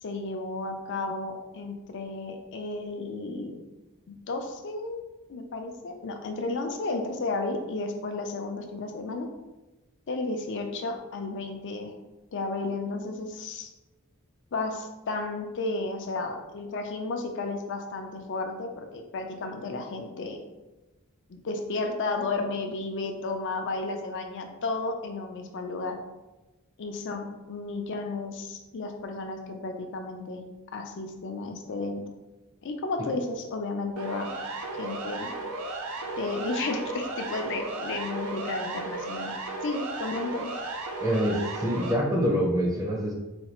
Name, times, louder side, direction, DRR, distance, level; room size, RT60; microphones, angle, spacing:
voice 1, 0.0-3.6 4.1-5.0 5.3-9.3 10.1-11.9 12.3-13.7 14.5-20.4 21.3-26.0 26.8-30.4 30.7-32.0 32.6-34.3 34.7-35.3 36.2-39.3 39.6-40.5, left 3 dB, 55° left, 5 dB, 0.5 m, -33 dB
Siren, 34.0-41.9, right 2 dB, 80° right, 0.5 m, -35 dB
voice 2, 41.0-43.1, equal, 15° right, -1 dB, 0.6 m, -25 dB
4.2 x 2.3 x 3.0 m, 1.1 s
head